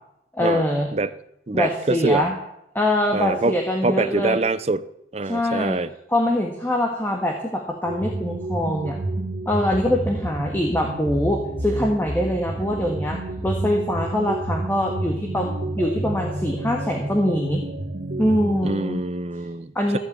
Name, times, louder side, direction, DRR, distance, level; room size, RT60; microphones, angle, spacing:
voice 1, 0.3-0.9 1.5-2.3 2.7-4.4 5.3-5.8 6.1-9.0 9.4-15.5 15.8-17.6 18.2-19.0 19.7-20.0, left 1 dB, 10° left, 1 dB, 1.7 m, -23 dB
voice 2, 1.5-2.3 3.1-3.5 3.8-4.8 5.1-5.9 18.6-20.0, right 2 dB, 35° right, 14 dB, 0.6 m, -24 dB
sound 1, 7.9-18.6, right 1 dB, 55° right, 1.6 m, -30 dB
15.5 x 8.4 x 8.7 m, 0.82 s
head